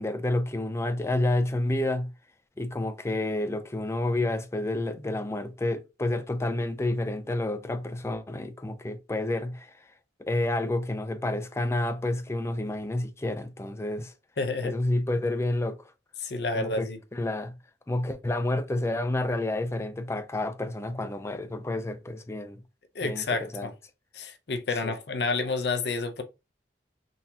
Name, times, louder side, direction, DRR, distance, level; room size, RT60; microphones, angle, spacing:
voice 1, 0.0-2.1 2.6-9.8 10.2-14.1 14.6-15.9 16.5-17.6 17.9-22.6 23.0-23.7 24.8-24.9, left 1 dB, 15° left, 0.4 m, -29 dB
voice 2, 14.4-14.7 16.2-17.0 22.9-23.7 24.1-26.2, left 3 dB, 65° left, 0.6 m, -29 dB
3.9 x 2.8 x 2.7 m
head